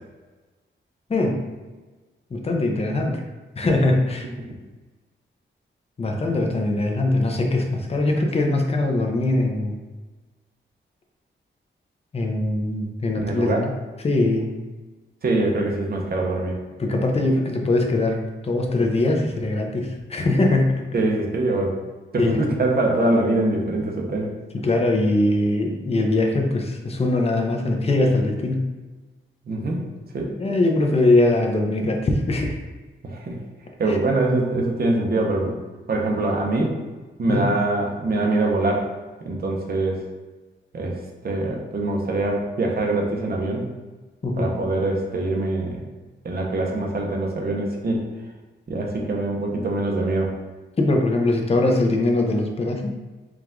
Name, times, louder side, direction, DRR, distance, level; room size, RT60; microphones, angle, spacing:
voice 1, 1.1-1.4 2.3-3.2 3.6-4.3 6.0-9.8 12.1-13.7 14.0-14.5 16.8-20.9 22.2-22.5 24.6-28.7 30.4-32.6 33.9-34.0 37.3-37.4 44.2-44.5 50.8-52.9, left 2 dB, 30° left, 2 dB, 0.6 m, -21 dB
voice 2, 13.2-13.6 15.2-16.5 20.9-21.7 22.1-24.3 29.5-29.8 30.1-30.3 33.0-33.4 33.8-35.5 35.9-36.8 37.2-38.9 39.2-40.0 40.7-40.9 41.2-43.7 44.4-45.8 46.2-48.0 48.7-50.3, right 2 dB, 50° right, 0 dB, 0.8 m, -23 dB
4.7 x 2.4 x 3.6 m, 1.3 s
wide cardioid pair, 150°, 20 cm